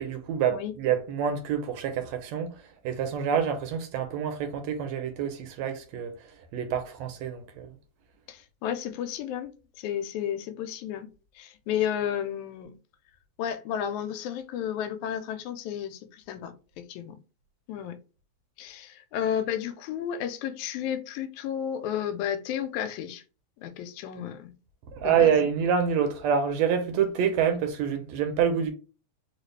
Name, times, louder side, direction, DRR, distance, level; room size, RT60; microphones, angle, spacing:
voice 1, 0.0-2.6 2.8-6.1 6.5-7.8 24.9-28.7, right 7 dB, 75° right, 1.7 m, -27 dB
voice 2, 8.3-11.1 11.4-12.7 13.4-17.2 17.7-18.0 18.6-23.2 23.6-24.5 25.0-25.3, left 9 dB, 85° left, 2.0 m, -32 dB
4.6 x 2.4 x 3.2 m
omnidirectional pair, 3.3 m